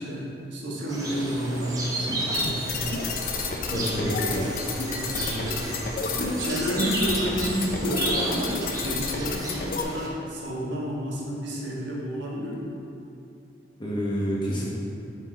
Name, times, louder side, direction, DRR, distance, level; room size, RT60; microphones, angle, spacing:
voice 1, 0.0-3.0 3.7-4.4 4.9-5.8 6.0-12.8, equal, 85° right, -4 dB, 1.5 m, -31 dB
sound 1, 0.9-10.1, right 1 dB, 20° right, 0.8 m, -32 dB
sound 2, 2.3-9.8, left 4 dB, 50° left, 0.5 m, -31 dB
voice 2, 3.7-4.2 13.8-14.7, equal, 25° left, -5 dB, 1.0 m, -28 dB
6.8 x 4.7 x 4.5 m, 2.7 s
head